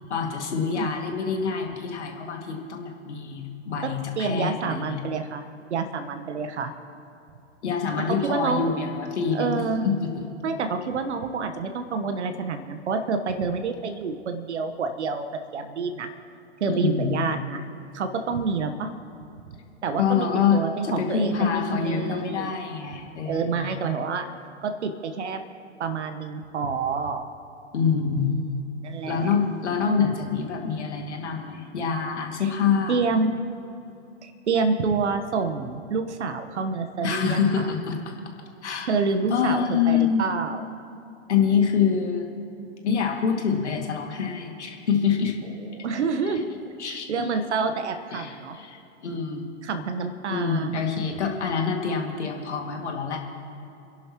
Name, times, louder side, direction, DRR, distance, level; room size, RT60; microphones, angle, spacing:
voice 1, 0.1-5.0 7.6-10.2 16.7-17.1 20.0-23.7 27.7-28.4 29.1-33.0 37.0-38.0 38.6-38.9 39.3-40.3 41.3-42.3 42.8-45.3 46.3-46.4 46.8-47.1 48.1-49.6 50.3-53.2, left 6 dB, 70° left, 2 dB, 2.2 m, -26 dB
voice 2, 3.8-6.7 8.0-8.7 9.3-9.8 10.4-15.3 15.5-16.1 16.6-17.6 17.9-18.9 19.8-22.5 23.2-24.3 24.6-25.4 25.8-27.3 28.2-28.5 28.8-29.3 32.4-32.5 32.9-33.4 34.2-37.7 38.9-40.7 45.6-46.5 46.8-48.6 49.6-50.8, right 4 dB, 70° right, 7 dB, 1.2 m, -28 dB
29.0 x 11.0 x 3.0 m, 2.8 s
figure-of-eight pair, 105°, 35 cm